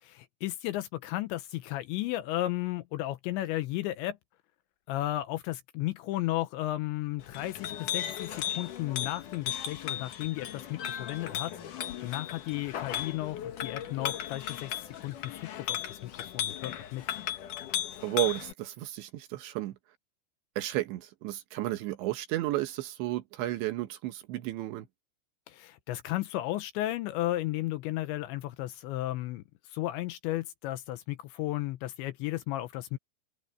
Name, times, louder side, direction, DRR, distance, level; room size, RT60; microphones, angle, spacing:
voice 1, 0.0-4.2 4.9-17.0 25.5-33.0, left 15 dB, 80° left, 2.8 m, -34 dB
Chink clink, 7.2-18.5, left 10 dB, 65° left, 2.2 m, -36 dB
voice 2, 18.0-19.8 20.6-24.9, right 16 dB, 75° right, 3.1 m, -32 dB
omnidirectional pair, 5.8 m